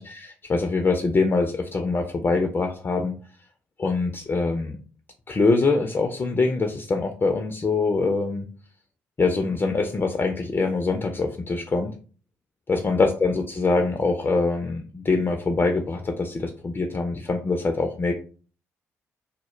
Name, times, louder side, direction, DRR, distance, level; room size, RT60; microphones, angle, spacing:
voice 1, 0.0-3.1 3.8-4.8 5.3-8.5 9.2-11.9 12.7-18.1, left 3 dB, 30° left, 5 dB, 0.4 m, -24 dB
2.0 x 2.0 x 3.0 m, 0.39 s
hypercardioid pair, 40°, 7 cm